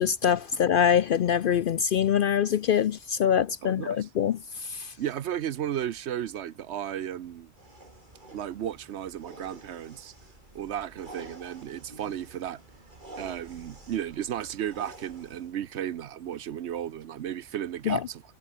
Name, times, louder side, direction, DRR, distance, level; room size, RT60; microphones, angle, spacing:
voice 1, 0.0-4.9 17.9-18.0, left 8 dB, 60° left, 0.6 m, -24 dB
voice 2, 3.6-4.0 5.0-7.5 8.3-10.1 10.5-12.6 13.2-18.2, right 10 dB, 70° right, 0.9 m, -34 dB
sound 1, 7.6-15.5, right 2 dB, 40° right, 3.8 m, -49 dB
omnidirectional pair, 1.2 m